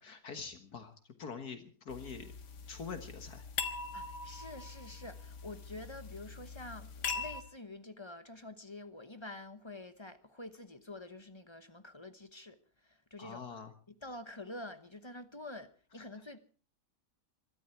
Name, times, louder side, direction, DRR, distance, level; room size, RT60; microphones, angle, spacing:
voice 1, 0.0-2.3 2.7-3.4 13.2-13.7, left 5 dB, 70° left, 2.0 m, -45 dB
sound 1, 1.9-7.4, left 5 dB, 90° left, 2.1 m, -42 dB
voice 2, 3.9-13.6 13.9-16.4, left 2 dB, 20° left, 0.9 m, -48 dB
24.0 x 13.0 x 4.5 m
omnidirectional pair, 1.7 m